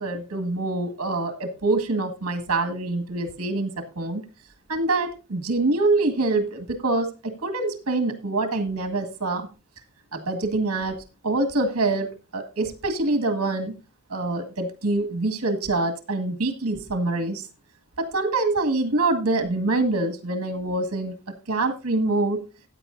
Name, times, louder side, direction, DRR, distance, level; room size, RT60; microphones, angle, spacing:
voice 1, 0.0-4.2 4.7-9.5 10.1-13.7 14.1-17.5 18.0-21.1 21.5-22.4, right 2 dB, 70° right, 6 dB, 1.9 m, -25 dB
15.0 x 9.1 x 2.6 m, 0.32 s
head